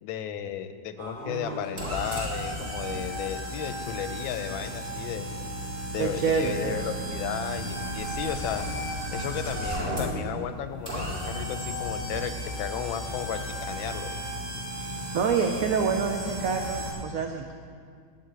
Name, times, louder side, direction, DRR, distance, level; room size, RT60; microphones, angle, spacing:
voice 1, 0.0-5.3 5.9-8.7 9.1-14.2, left 9 dB, 90° left, 10 dB, 1.4 m, -34 dB
sound 1, 1.0-16.9, equal, 25° right, 2.4 m, -34 dB
voice 2, 6.0-6.8 15.1-17.5, right 6 dB, 85° right, 4 dB, 0.7 m, -27 dB
10.5 x 4.6 x 7.7 m, 2.1 s
omnidirectional pair, 2.1 m